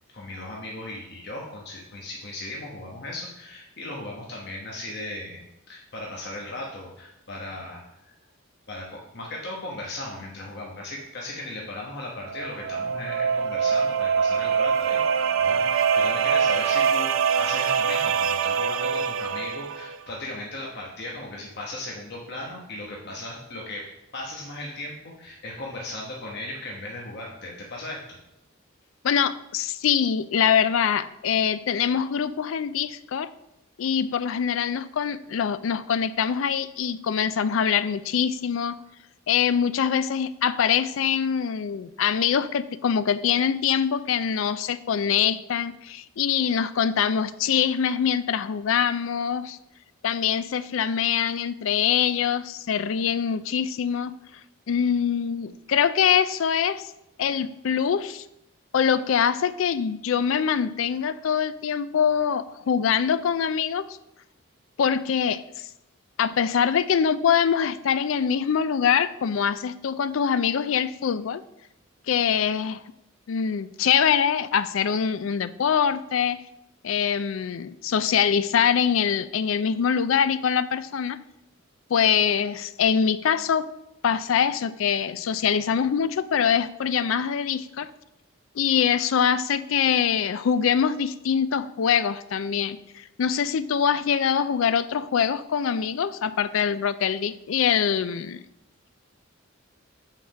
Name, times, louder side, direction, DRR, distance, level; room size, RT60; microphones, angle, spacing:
voice 1, 0.1-5.4 5.7-7.8 8.7-23.9 24.1-28.2, left 1 dB, 55° left, -2 dB, 1.1 m, -37 dB
sound 1, 12.2-20.0, right 6 dB, 70° right, 0.4 m, -24 dB
voice 2, 29.0-33.3 33.8-38.8 39.3-49.6 50.0-54.1 54.7-56.9 57.2-58.2 58.7-63.8 64.8-65.4 66.2-71.4 72.1-72.8 73.3-76.4 76.8-81.2 81.9-83.7 84.0-87.9 88.6-98.4, left 7 dB, 75° left, 14 dB, 0.4 m, -24 dB
5.7 x 4.8 x 6.2 m, 0.84 s
head